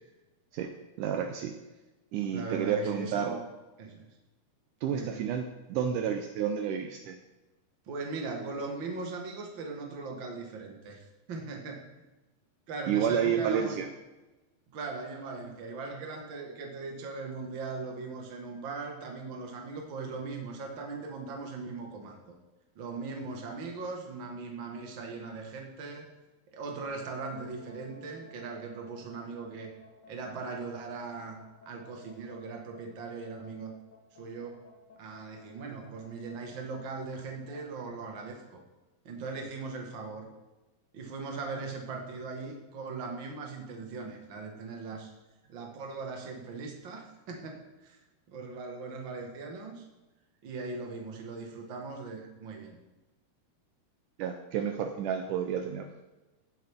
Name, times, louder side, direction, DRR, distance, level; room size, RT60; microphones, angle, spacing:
voice 1, 1.0-1.6 2.1-3.4 4.8-7.2 12.9-13.9 54.2-55.9, right 8 dB, 90° right, 5 dB, 1.8 m, -30 dB
voice 2, 2.3-3.4 3.8-4.1 4.9-5.2 7.8-11.9 12.7-13.9 14.7-22.3 22.7-26.1 26.5-29.7 30.1-33.7 34.1-34.6 35.0-38.6 39.0-40.3 40.9-45.1 45.5-48.0 48.3-49.9 50.4-52.8, right 4 dB, 50° right, 1 dB, 1.5 m, -39 dB
sound 1, 26.8-37.6, left 1 dB, 55° left, 2.9 m, -55 dB
18.0 x 7.6 x 3.6 m, 1.1 s
omnidirectional pair, 4.6 m